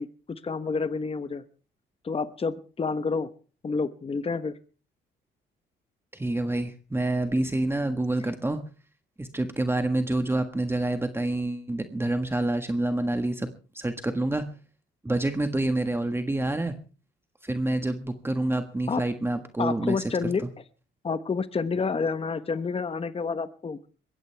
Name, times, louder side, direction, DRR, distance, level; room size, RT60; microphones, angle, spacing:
voice 1, 0.0-1.4 2.0-3.3 3.6-4.6 18.9-19.0 19.6-20.4 21.0-23.8, left 4 dB, 30° left, 12 dB, 1.1 m, -29 dB
voice 2, 6.1-8.6 9.2-13.5 13.7-14.4 15.0-16.7 17.4-20.5, right 2 dB, 10° right, 7 dB, 1.5 m, -27 dB
21.5 x 16.5 x 3.4 m, 0.37 s
cardioid pair, 90°, 20 cm